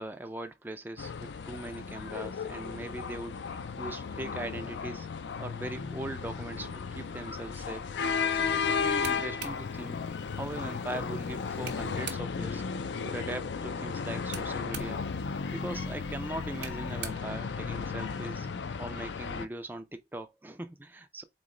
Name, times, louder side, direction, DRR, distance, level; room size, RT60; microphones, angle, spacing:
voice 1, 0.0-5.1 5.4-7.9 8.4-10.0 10.3-12.6 13.0-15.0 15.5-18.5 18.8-21.2, right 1 dB, 10° right, 0.4 m, -40 dB
sound 1, 1.0-19.5, left 5 dB, 85° left, 0.4 m, -34 dB
sound 2, 8.8-12.6 14.0-18.2, right 7 dB, 80° right, 0.7 m, -47 dB
3.9 x 3.1 x 3.7 m
head